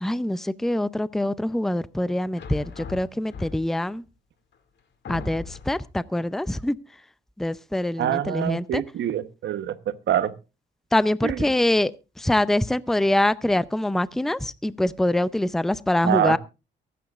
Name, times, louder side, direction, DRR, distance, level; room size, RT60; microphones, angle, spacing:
voice 1, 0.0-4.0 5.1-6.8 7.4-8.8 10.9-11.9 12.2-16.4, left 1 dB, ahead, 0.5 m, -24 dB
sound 1, 2.4-3.9 4.5-4.6 5.0-5.9, left 5 dB, 60° left, 2.2 m, -38 dB
voice 2, 8.0-10.3 11.2-11.4 16.0-16.4, right 10 dB, 65° right, 1.0 m, -25 dB
23.5 x 9.4 x 2.4 m
cardioid pair, 90°, 20 cm